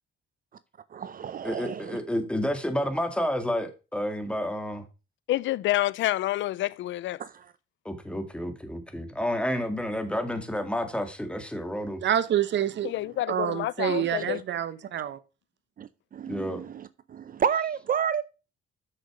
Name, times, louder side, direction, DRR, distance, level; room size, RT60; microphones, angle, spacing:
voice 1, 0.9-2.0 7.2-7.3 13.9-14.3 15.8-18.2, right 8 dB, 45° right, 0.5 m, -31 dB
voice 2, 1.4-4.8 7.9-12.0 16.3-16.6, equal, 5° left, 2.0 m, -30 dB
voice 3, 5.3-7.2 12.8-14.4, left 15 dB, 75° left, 0.4 m, -28 dB
voice 4, 12.0-12.9 13.3-15.2, right 10 dB, 65° right, 0.9 m, -27 dB
7.4 x 6.6 x 4.8 m
cardioid pair, 90°, 20 cm